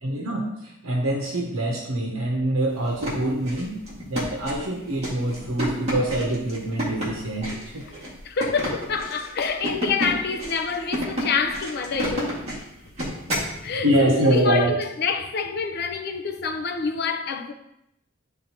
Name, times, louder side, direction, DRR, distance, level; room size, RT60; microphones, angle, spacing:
voice 1, 0.0-3.8 4.1-7.9 13.8-14.8, right 1 dB, 90° right, 0.8 m, -24 dB
sound 1, 2.8-13.5, equal, 30° right, 2.0 m, -31 dB
voice 2, 8.2-12.5 13.3-17.5, left 5 dB, 50° left, 0.6 m, -27 dB
10.5 x 3.6 x 2.9 m
head